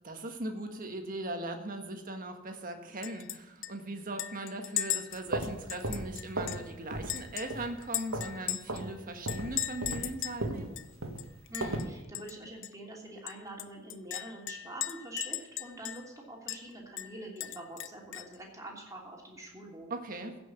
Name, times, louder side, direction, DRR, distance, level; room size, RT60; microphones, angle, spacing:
voice 1, 0.0-10.8 19.9-20.4, right 2 dB, 40° right, 5 dB, 1.6 m, -39 dB
Chink clink, 3.0-3.4 3.6-3.7 4.2-6.7 7.1-8.8 9.3-10.4 10.8-10.9 11.2-11.8 12.1-12.3 12.6-12.7 13.3-16.1 16.5-16.6 17.0-18.4, left 13 dB, 60° left, 0.6 m, -37 dB
sound 1, 5.1-6.6 6.9-7.2 7.5-8.4 8.7-8.9 9.2-11.9, right 1 dB, 65° right, 1.8 m, -36 dB
voice 2, 11.5-19.9, right 1 dB, 15° right, -2 dB, 3.0 m, -45 dB
15.5 x 6.1 x 8.3 m, 1.1 s
head